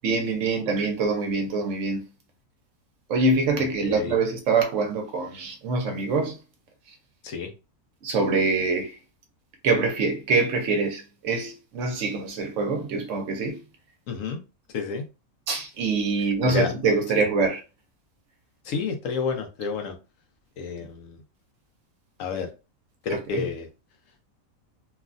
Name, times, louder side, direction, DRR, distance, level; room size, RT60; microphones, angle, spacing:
voice 1, 0.0-2.0 3.1-6.4 8.0-9.0 9.6-13.6 15.5-17.6 23.3-23.4, right 3 dB, 70° right, 1.0 m, -24 dB
voice 2, 3.8-4.1 7.2-7.5 14.1-14.4 14.7-15.0 16.5-16.7 17.1-17.2 18.6-19.9 20.6-21.2 22.2-22.5 23.0-23.7, left 5 dB, 70° left, 1.0 m, -29 dB
3.1 x 2.3 x 2.4 m
omnidirectional pair, 1.4 m